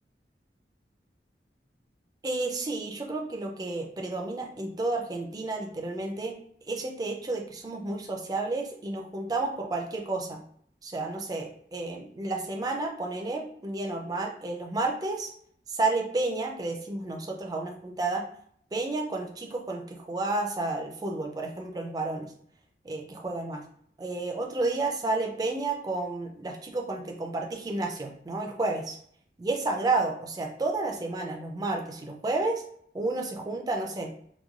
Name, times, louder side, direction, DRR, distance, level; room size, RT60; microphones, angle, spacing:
voice 1, 2.2-6.4 6.7-10.4 10.8-15.3 15.7-18.3 18.7-22.3 22.8-23.6 24.0-29.0 29.4-32.6 32.9-34.1, right 2 dB, 20° right, 2 dB, 0.3 m, -31 dB
2.9 x 2.1 x 2.4 m, 0.64 s
head